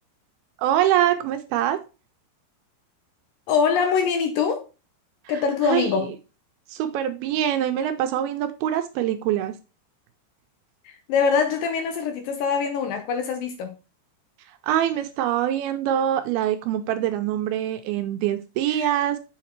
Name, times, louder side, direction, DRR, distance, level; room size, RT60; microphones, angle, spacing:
voice 1, 0.6-1.8 5.3-6.1 6.7-9.6 14.6-19.2, right 11 dB, 80° right, 2.3 m, -24 dB
voice 2, 3.5-4.6 5.3-6.1 10.9-13.7 18.7-18.9, left 6 dB, 75° left, 2.2 m, -23 dB
7.2 x 4.0 x 4.4 m
omnidirectional pair, 4.7 m